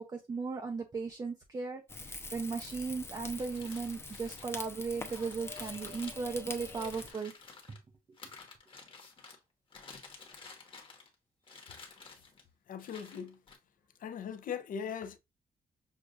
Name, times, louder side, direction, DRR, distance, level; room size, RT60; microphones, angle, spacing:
voice 1, 0.0-7.3 7.7-7.8, right 4 dB, 25° right, 0.5 m, -37 dB
Rain / Fire, 1.9-7.1, left 3 dB, 15° left, 0.7 m, -44 dB
sound 1, 3.3-7.8 8.2-9.4 9.7-11.1 11.4-12.4 12.8-13.6, left 4 dB, 30° left, 1.1 m, -52 dB
voice 2, 12.7-13.4 14.0-15.2, left 7 dB, 60° left, 0.6 m, -39 dB
6.2 x 2.4 x 2.4 m
wide cardioid pair, 155°, 16 cm